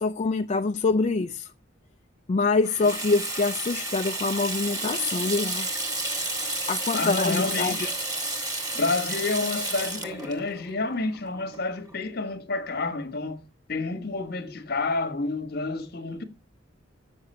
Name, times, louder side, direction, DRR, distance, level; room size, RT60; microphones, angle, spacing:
voice 1, 0.0-1.5 2.3-5.7 6.7-7.7, left 3 dB, 35° left, 0.4 m, -25 dB
Water tap faucet / Sink (filling or washing), 2.6-12.0, right 2 dB, 20° right, 2.0 m, -31 dB
voice 2, 6.9-7.9 8.7-13.4 13.7-16.2, left 3 dB, 55° left, 1.3 m, -29 dB
7.0 x 6.6 x 5.5 m
head